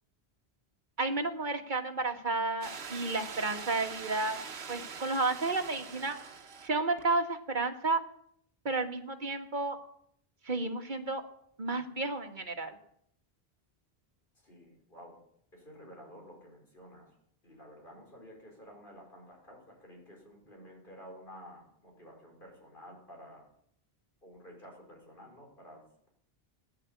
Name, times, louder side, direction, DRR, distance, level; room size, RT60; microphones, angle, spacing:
voice 1, 1.0-4.4 4.7-6.2 6.6-8.0 8.7-9.8 10.5-11.2 11.6-12.8, right 3 dB, 50° right, 5 dB, 1.8 m, -32 dB
sound 1, 2.6-6.7 7.0-7.1, right 6 dB, 80° right, 1.3 m, -43 dB
voice 2, 14.4-15.2 15.5-17.1 17.4-23.4 24.2-26.1, equal, 55° left, 0 dB, 5.4 m, -52 dB
14.5 x 10.5 x 8.5 m, 0.69 s
omnidirectional pair, 1.0 m